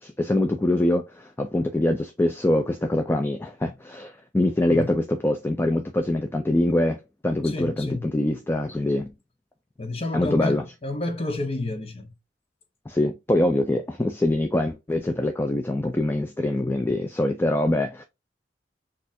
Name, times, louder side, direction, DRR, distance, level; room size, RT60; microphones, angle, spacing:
voice 1, 0.0-9.1 10.1-10.6 12.9-18.0, left 1 dB, 15° left, 0.4 m, -24 dB
voice 2, 7.4-8.0 9.8-12.1, left 2 dB, 35° left, 0.8 m, -30 dB
6.2 x 2.5 x 2.7 m
head